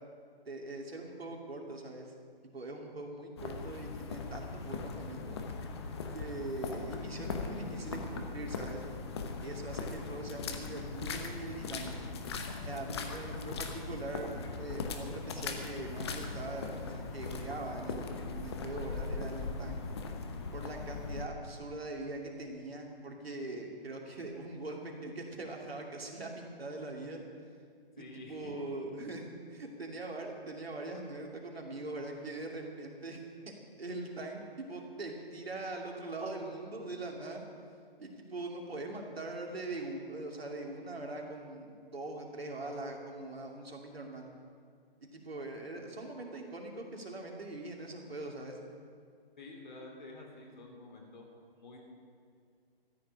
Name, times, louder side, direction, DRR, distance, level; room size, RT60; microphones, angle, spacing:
voice 1, 0.5-2.1 2.4-5.4 6.1-8.8 9.4-12.1 12.6-19.8 20.5-27.2 28.0-29.2 29.5-33.2 33.5-37.4 38.0-44.3 45.1-48.6, right 2 dB, 80° right, 1 dB, 2.7 m, -42 dB
sound 1, 3.4-21.2, left 4 dB, 25° left, 0.9 m, -39 dB
voice 2, 28.0-28.5 49.4-51.3 51.6-51.8, left 2 dB, 50° left, 1 dB, 3.2 m, -49 dB
14.0 x 6.7 x 9.6 m, 2.1 s
hypercardioid pair, 155°, 30 cm